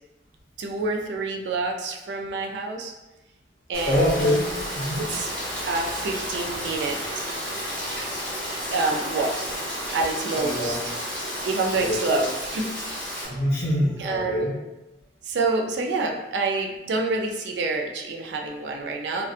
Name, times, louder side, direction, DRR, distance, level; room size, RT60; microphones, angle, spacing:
voice 1, 0.6-2.9 3.7-4.1 5.0-5.3 5.7-7.3 8.7-9.5 9.9-10.8 11.4-12.7 14.0-14.5 15.3-19.3, right 3 dB, 65° right, 2 dB, 0.3 m, -27 dB
Rain, 3.7-13.2, equal, 5° left, 0.7 m, -32 dB
voice 2, 3.8-4.5 4.7-5.0 7.9-8.0 10.4-10.7 11.8-12.2 13.2-14.5, equal, 55° left, -5 dB, 0.8 m, -24 dB
2.6 x 2.1 x 2.4 m, 1.0 s
head